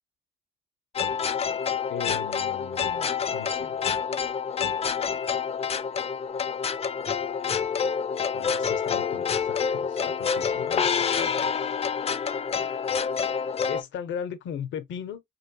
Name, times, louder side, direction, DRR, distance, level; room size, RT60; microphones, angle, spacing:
sound 1, 0.9-13.8, left 6 dB, 30° left, 0.4 m, -27 dB
voice 1, 1.9-3.8 8.3-11.5 13.7-15.2, left 8 dB, 70° left, 0.6 m, -37 dB
2.9 x 2.7 x 2.7 m
cardioid pair, 90°, 20 cm